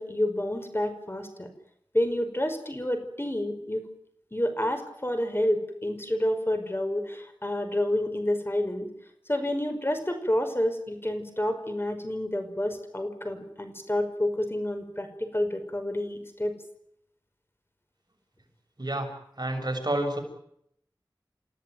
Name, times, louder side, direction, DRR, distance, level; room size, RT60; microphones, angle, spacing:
voice 1, 0.0-1.5 1.9-3.9 4.3-8.9 9.3-16.5, left 1 dB, 30° left, 7 dB, 5.2 m, -29 dB
voice 2, 19.4-20.2, right 1 dB, 55° right, 4 dB, 6.8 m, -29 dB
29.5 x 16.5 x 9.4 m, 0.73 s
wide cardioid pair, 50°, 8 cm